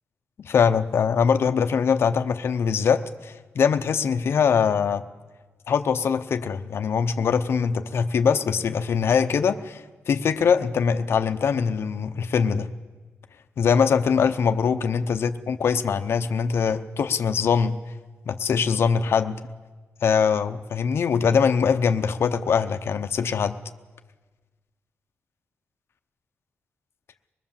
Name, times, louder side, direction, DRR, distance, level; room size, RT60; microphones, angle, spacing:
voice 1, 0.4-5.0 5.7-12.7 13.6-17.8 18.3-19.4 20.0-23.6, left 6 dB, 60° left, 8 dB, 0.8 m, -22 dB
24.5 x 20.5 x 7.3 m, 1.3 s
wide cardioid pair, 155°, 5 cm